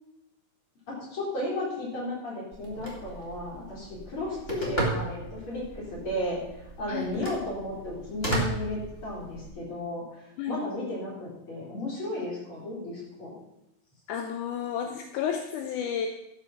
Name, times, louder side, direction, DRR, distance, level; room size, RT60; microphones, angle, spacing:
voice 1, 1.1-6.4 6.8-10.0 10.5-13.3, left 1 dB, 35° left, -5 dB, 4.6 m, -34 dB
Telephone, 2.5-9.5, right 2 dB, 20° left, 2.1 m, -35 dB
voice 2, 14.1-16.1, left 8 dB, 75° left, 5 dB, 1.9 m, -31 dB
12.5 x 6.7 x 5.9 m, 0.87 s
omnidirectional pair, 4.1 m